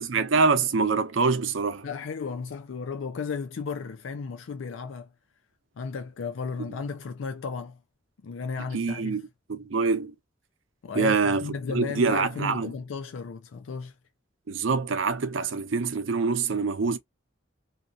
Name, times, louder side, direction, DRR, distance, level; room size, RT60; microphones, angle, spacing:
voice 1, 0.0-1.9 8.7-9.2 9.5-10.1 10.9-12.7 14.5-17.0, right 4 dB, 90° right, 0.6 m, -25 dB
voice 2, 1.8-5.1 5.8-7.8 8.2-9.2 10.8-13.9, left 5 dB, 90° left, 0.4 m, -34 dB
2.7 x 2.4 x 2.5 m
head